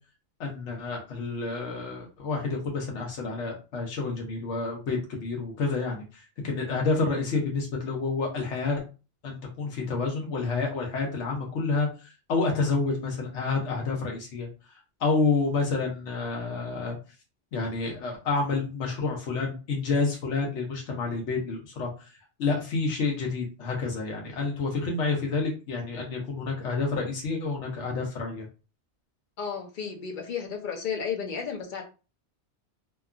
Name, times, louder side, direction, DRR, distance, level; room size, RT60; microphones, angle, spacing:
voice 1, 0.4-8.8 9.2-17.0 17.5-22.1 22.4-28.5, left 4 dB, 85° left, 0 dB, 1.0 m, -29 dB
voice 2, 29.4-31.8, left 6 dB, 55° left, 2 dB, 0.7 m, -33 dB
2.8 x 2.3 x 2.4 m, 0.32 s
omnidirectional pair, 1.2 m